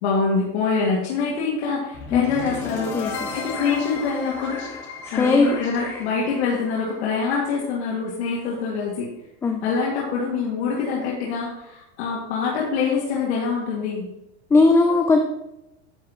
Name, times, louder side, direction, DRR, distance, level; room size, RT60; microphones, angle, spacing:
voice 1, 0.0-2.9 3.3-4.6 5.1-9.1 9.6-14.1, left 5 dB, 75° left, -4 dB, 2.4 m, -25 dB
sound 1, 1.9-8.0, left 4 dB, 35° left, 1.7 m, -34 dB
voice 2, 2.9-3.4 5.2-5.6 9.4-9.6 14.5-15.2, left 3 dB, 10° left, 2 dB, 0.3 m, -18 dB
10.5 x 8.0 x 3.1 m, 0.88 s
supercardioid pair, 155°, 34 cm